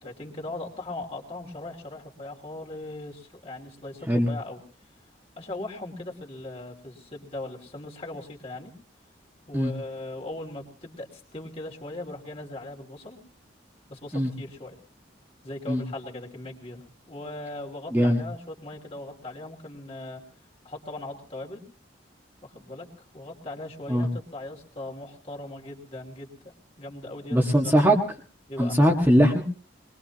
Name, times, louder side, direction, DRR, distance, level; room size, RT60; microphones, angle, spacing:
voice 1, 0.0-4.6 5.4-8.7 9.5-13.2 13.9-14.8 15.4-20.2 20.6-21.6 22.4-27.7 28.5-28.8, left 2 dB, 30° left, -1 dB, 3.0 m, -39 dB
voice 2, 17.9-18.2 23.9-24.1 27.3-28.0 28.6-29.4, equal, 10° right, -1 dB, 1.7 m, -20 dB
22.5 x 21.5 x 3.0 m, 0.39 s
head